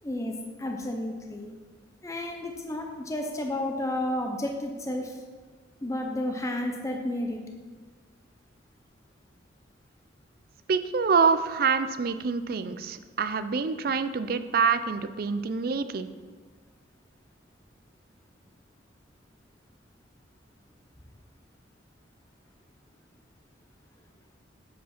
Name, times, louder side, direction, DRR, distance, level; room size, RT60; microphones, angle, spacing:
voice 1, 0.0-1.5 2.0-5.2 5.8-7.4, left 1 dB, 15° left, 2 dB, 0.6 m, -32 dB
voice 2, 10.7-16.1, right 5 dB, 50° right, 12 dB, 0.4 m, -26 dB
8.2 x 5.0 x 5.9 m, 1.4 s
head